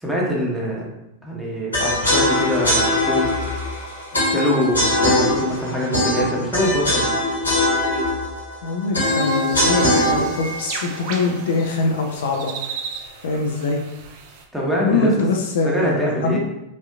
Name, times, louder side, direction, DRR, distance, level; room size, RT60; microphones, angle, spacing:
voice 1, 0.0-0.9 1.2-3.3 4.3-7.1 14.5-15.1 15.6-16.4, equal, 5° right, -5 dB, 1.1 m, -24 dB
sound 1, 1.7-11.8, left 1 dB, 80° left, 1.5 m, -21 dB
sound 2, 2.0-7.0, left 1 dB, 75° right, 0.8 m, -37 dB
voice 2, 8.6-12.5 13.2-13.8 14.8-16.4, left 3 dB, 60° left, 2 dB, 0.5 m, -23 dB
sound 3, 9.0-14.4, right 5 dB, 45° right, 0.5 m, -35 dB
5.2 x 2.7 x 2.4 m, 0.88 s
figure-of-eight pair, 90°, 0 cm